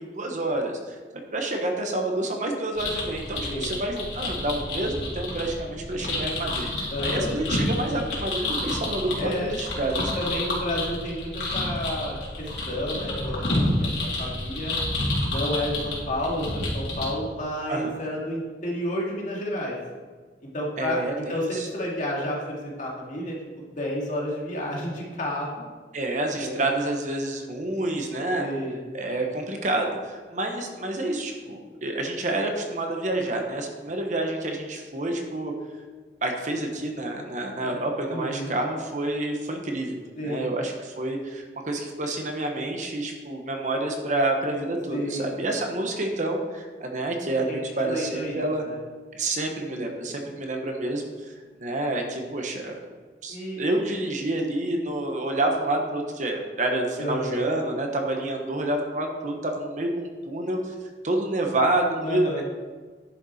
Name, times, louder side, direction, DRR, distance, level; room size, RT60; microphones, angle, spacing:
voice 1, 0.0-10.1 17.7-17.9 20.8-21.7 25.9-28.5 28.9-35.5 36.2-48.6 49.1-51.1 51.6-52.8 53.2-60.7 61.0-62.4, right 2 dB, 45° right, 2 dB, 1.1 m, -28 dB
sound 1, 2.8-17.0, left 1 dB, 90° left, 3.0 m, -29 dB
voice 2, 6.9-7.4 9.2-9.5 10.1-14.7 15.3-19.8 20.5-23.4 23.8-25.7 26.4-26.6 28.4-28.8 38.1-38.6 40.2-40.4 44.9-45.3 47.5-47.6 47.8-48.8 53.3-53.8 57.0-57.4 62.0-62.4, left 1 dB, 45° left, -3 dB, 2.1 m, -31 dB
10.5 x 6.7 x 4.2 m, 1.4 s
head